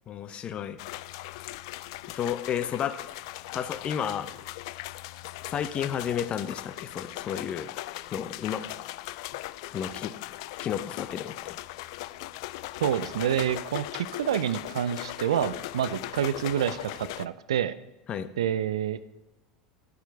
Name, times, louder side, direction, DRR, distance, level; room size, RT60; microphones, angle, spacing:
voice 1, 0.1-0.8 2.2-3.0 3.5-4.3 5.4-7.7 8.1-8.6 9.7-10.1 10.6-11.6 18.1-18.3, left 9 dB, 40° left, 12 dB, 0.8 m, -32 dB
sound 1, 0.8-17.3, left 17 dB, 65° left, 0.3 m, -39 dB
voice 2, 12.8-17.8 18.4-19.0, right 10 dB, 75° right, 15 dB, 0.5 m, -28 dB
11.0 x 8.5 x 4.7 m, 0.98 s
hypercardioid pair, 80°, 3 cm